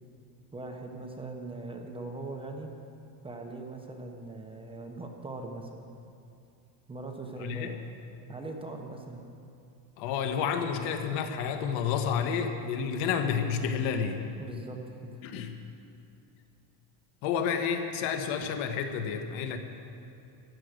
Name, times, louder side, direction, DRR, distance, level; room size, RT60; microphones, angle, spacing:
voice 1, 0.5-2.7 3.2-5.9 6.9-7.8 8.3-9.3 14.4-15.1, right 2 dB, 10° right, 2 dB, 0.9 m, -40 dB
voice 2, 7.4-7.7 10.0-14.2 15.2-15.5 17.2-19.6, left 7 dB, 75° left, 6 dB, 1.5 m, -30 dB
14.5 x 11.0 x 6.6 m, 2.6 s
cardioid pair, 150°, 48 cm